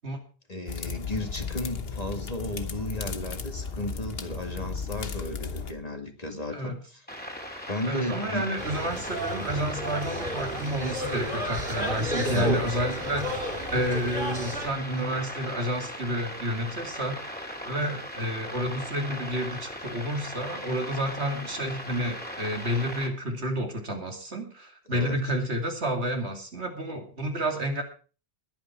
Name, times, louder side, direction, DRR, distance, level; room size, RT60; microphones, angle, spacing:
voice 1, 0.5-7.0 7.7-8.5 12.3-12.8 24.9-25.2, left 1 dB, 35° left, 4 dB, 2.3 m, -34 dB
sound 1, 0.7-5.7, left 5 dB, 65° left, 1.4 m, -35 dB
sound 2, 7.1-23.1, equal, 10° left, 2.8 m, -38 dB
voice 2, 7.9-27.8, equal, 80° right, 4 dB, 2.9 m, -30 dB
sound 3, 8.6-14.7, right 1 dB, 50° right, 3.9 m, -32 dB
21.0 x 8.9 x 4.5 m, 0.37 s
omnidirectional pair, 1.1 m